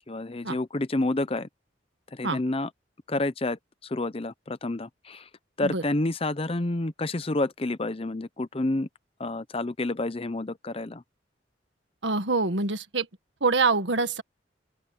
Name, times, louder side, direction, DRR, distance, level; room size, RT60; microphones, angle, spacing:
voice 1, 0.1-1.5 2.1-2.7 3.1-5.3 5.6-8.9 9.2-11.0, left 2 dB, 30° left, 0.7 m, -29 dB
voice 2, 12.0-13.1 13.4-14.2, right 3 dB, 85° right, 1.7 m, -25 dB
open air
head